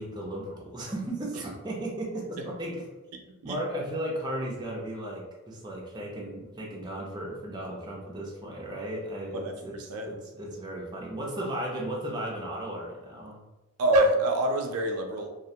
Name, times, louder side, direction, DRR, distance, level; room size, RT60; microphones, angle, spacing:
voice 1, 0.0-3.1 3.4-13.4, right 1 dB, 20° right, -3 dB, 0.4 m, -35 dB
voice 2, 9.3-10.1 13.8-15.3, right 1 dB, 85° right, 3 dB, 0.4 m, -26 dB
2.3 x 2.1 x 2.7 m, 1.1 s
head